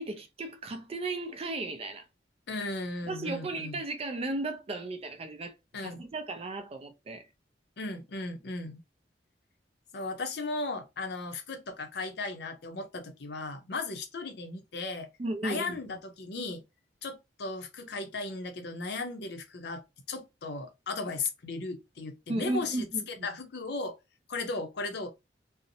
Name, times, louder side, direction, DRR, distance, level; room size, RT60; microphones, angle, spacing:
voice 1, 0.0-2.1 3.1-5.5 5.8-7.3 15.2-16.0 22.3-23.3, right 2 dB, 35° right, 0.4 m, -35 dB
voice 2, 2.5-3.8 5.7-6.0 7.8-8.8 9.9-15.1 15.4-16.6 17.0-19.8 20.1-24.0 24.3-25.1, left 3 dB, 65° left, 0.6 m, -36 dB
2.5 x 2.0 x 2.6 m
head